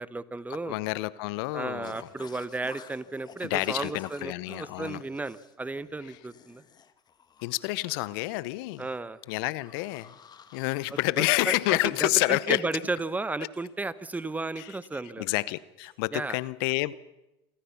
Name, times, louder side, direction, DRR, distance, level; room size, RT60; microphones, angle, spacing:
voice 1, 0.0-0.8 1.5-6.6 8.8-9.2 11.2-15.3 16.1-16.4, right 3 dB, 10° right, 16 dB, 1.0 m, -34 dB
voice 2, 0.7-2.1 3.4-5.0 7.4-8.9 9.3-10.2 10.5-12.6 14.6-14.8 15.2-16.9, left 20 dB, 70° left, 19 dB, 0.8 m, -29 dB
sound 1, 1.8-11.1, left 7 dB, 30° left, 1.5 m, -53 dB
sound 2, 10.4-11.4 11.8-12.1 12.4-13.2 13.5-13.8 14.1-15.0 15.3-16.1, right 7 dB, 50° right, 6.5 m, -63 dB
26.5 x 14.5 x 7.1 m, 0.93 s
hypercardioid pair, 90°, 13 cm